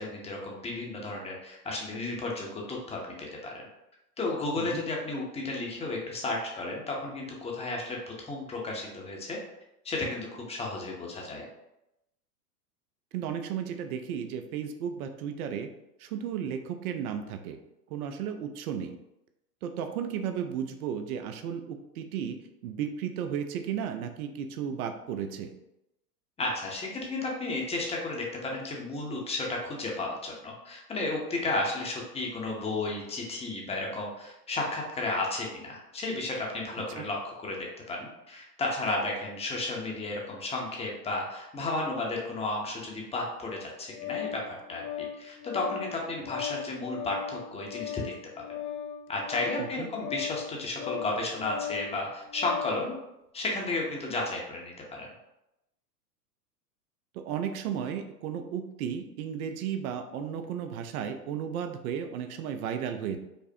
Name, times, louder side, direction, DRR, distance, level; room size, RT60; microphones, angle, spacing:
voice 1, 0.0-3.6 4.2-9.4 9.8-11.4 26.4-48.4 49.1-52.9 53.3-55.1, left 2 dB, 15° left, -1 dB, 0.7 m, -33 dB
voice 2, 13.1-15.7 16.0-17.6 17.9-19.0 19.6-22.4 22.6-25.5 36.9-37.0 49.6-49.9 57.1-63.2, right 8 dB, 65° right, 7 dB, 0.6 m, -34 dB
Organ, 43.4-52.8, left 10 dB, 65° left, 0.5 m, -38 dB
5.2 x 2.0 x 2.7 m, 0.89 s
hypercardioid pair, 105°, 47 cm